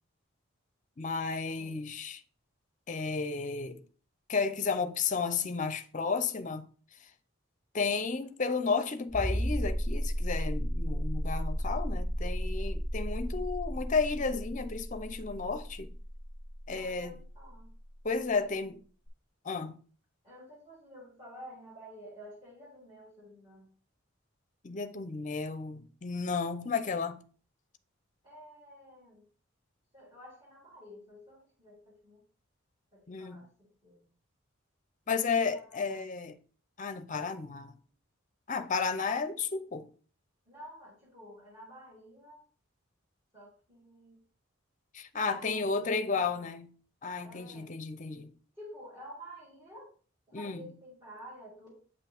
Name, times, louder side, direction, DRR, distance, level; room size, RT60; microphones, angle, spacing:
voice 1, 1.0-2.2 2.9-3.8 4.3-6.7 7.0-7.1 7.7-15.9 16.7-17.2 18.0-18.8 19.4-19.7 24.6-27.2 33.1-33.4 35.1-36.4 36.8-37.8 38.5-39.9 44.9-46.7 47.0-48.3 50.3-50.7, left 4 dB, 40° left, 0.6 m, -33 dB
sound 1, 9.1-17.6 19.1-19.2, equal, ahead, 2.8 m, -33 dB
voice 2, 16.7-17.7 18.3-18.6 20.2-23.7 28.2-29.3 29.9-32.2 32.9-34.0 35.0-36.1 40.5-42.4 43.3-44.2 45.2-46.5 47.2-47.7 48.5-49.9 50.3-51.8, equal, 20° right, 3.0 m, -51 dB
8.1 x 5.8 x 3.5 m
head